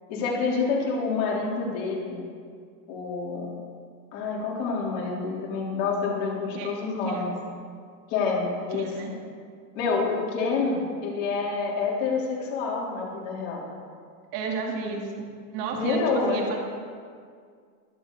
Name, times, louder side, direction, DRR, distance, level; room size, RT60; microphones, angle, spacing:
voice 1, 0.1-2.2 2.9-3.6 4.1-7.3 8.1-8.9 9.7-13.7 15.7-16.4, left 4 dB, 60° left, -3 dB, 3.6 m, -27 dB
voice 2, 8.7-9.1 14.3-15.2 15.5-16.6, right 5 dB, 65° right, 0 dB, 2.9 m, -32 dB
22.5 x 7.6 x 3.9 m, 2.1 s
supercardioid pair, 120°, 50 cm